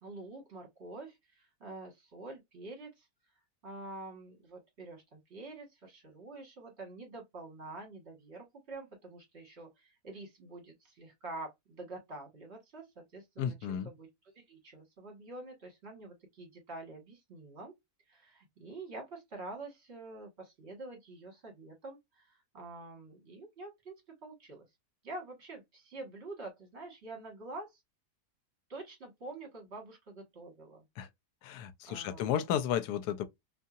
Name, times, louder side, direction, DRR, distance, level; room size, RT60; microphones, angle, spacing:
voice 1, 0.0-3.1 3.6-14.1 14.5-17.7 18.1-24.6 25.0-27.8 28.7-30.8 31.9-32.3, right 2 dB, 40° right, 1.6 m, -47 dB
voice 2, 13.4-13.9 31.0-31.1 31.4-33.3, left 9 dB, 75° left, 1.1 m, -33 dB
2.8 x 2.7 x 2.3 m
omnidirectional pair, 1.8 m